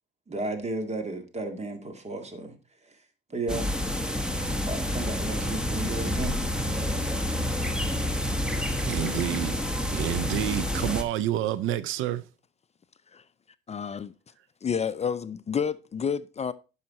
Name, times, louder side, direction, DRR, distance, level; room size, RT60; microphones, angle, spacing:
voice 1, 0.3-2.5 3.3-3.8 4.6-6.5, right 2 dB, 35° right, 2.0 m, -33 dB
sound 1, 3.5-11.0, left 1 dB, 5° right, 1.3 m, -28 dB
voice 2, 8.8-9.6 9.9-12.2, right 12 dB, 85° right, 0.5 m, -28 dB
voice 3, 13.7-14.1 14.6-16.5, left 7 dB, 35° left, 0.5 m, -29 dB
10.5 x 5.7 x 4.1 m
cardioid pair, 90°, 20 cm